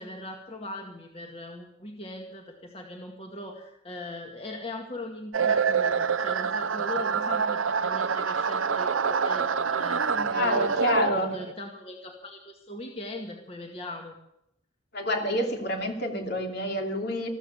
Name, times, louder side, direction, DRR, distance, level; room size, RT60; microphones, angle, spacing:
voice 1, 0.0-14.2, left 1 dB, 30° left, 1 dB, 2.0 m, -40 dB
sound 1, 5.3-11.5, right 6 dB, 80° right, 0.7 m, -26 dB
voice 2, 10.3-11.3 14.9-17.3, left 1 dB, 55° left, 3 dB, 2.8 m, -28 dB
14.5 x 14.0 x 7.0 m, 0.77 s
head